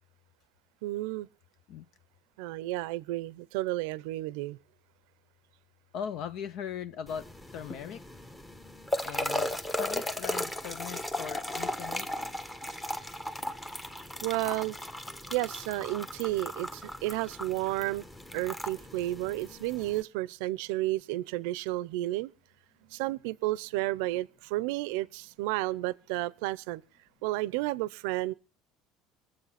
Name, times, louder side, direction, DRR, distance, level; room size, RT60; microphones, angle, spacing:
voice 1, 0.8-1.3 2.4-4.6 14.2-14.8 15.3-18.0 18.3-22.3 22.9-26.8 27.2-28.3, right 17 dB, 85° right, 0.6 m, -32 dB
voice 2, 5.9-8.0 9.0-12.4, left 8 dB, 55° left, 0.6 m, -40 dB
sound 1, 7.1-20.0, left 1 dB, 10° left, 1.1 m, -36 dB
22.5 x 7.7 x 5.8 m
cardioid pair, 135°, 0 cm